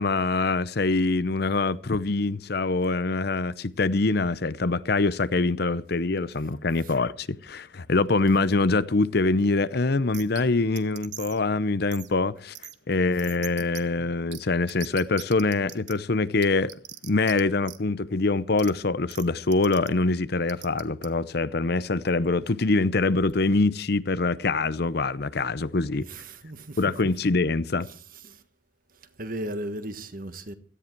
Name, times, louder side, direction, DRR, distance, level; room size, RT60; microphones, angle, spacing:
voice 1, 0.0-12.5 12.9-16.7 17.0-26.1 26.8-27.9, left 3 dB, 60° left, 0.8 m, -24 dB
sound 1, 10.1-10.4 10.8-11.4 11.9-12.1 12.5-12.7 13.2-13.8 14.3-14.4 14.7-15.9 16.4-17.4 17.6-17.8 18.6-18.7 19.1-19.2 19.5-19.9 20.5-21.1, right 13 dB, 70° right, 1.2 m, -40 dB
voice 2, 25.9-26.9 28.2-28.4 29.2-30.5, right 1 dB, 50° right, 1.5 m, -36 dB
17.0 x 13.5 x 4.6 m
head